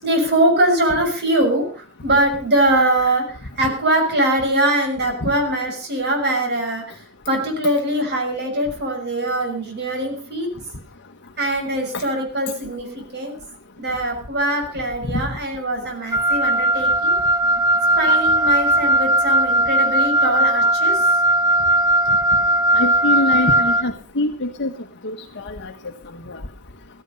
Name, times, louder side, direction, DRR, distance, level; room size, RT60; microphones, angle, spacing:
voice 1, 0.0-10.5 11.4-13.4 13.8-17.2 18.0-21.1, right 1 dB, 50° right, 3 dB, 6.2 m, -22 dB
Wind instrument woodwind instrument, 16.1-23.9, right 1 dB, 15° right, 0.7 m, -18 dB
voice 2, 22.7-24.7 25.0-25.7 26.3-26.4, left 1 dB, 55° left, 5 dB, 1.2 m, -24 dB
15.5 x 15.5 x 5.4 m, 0.39 s
head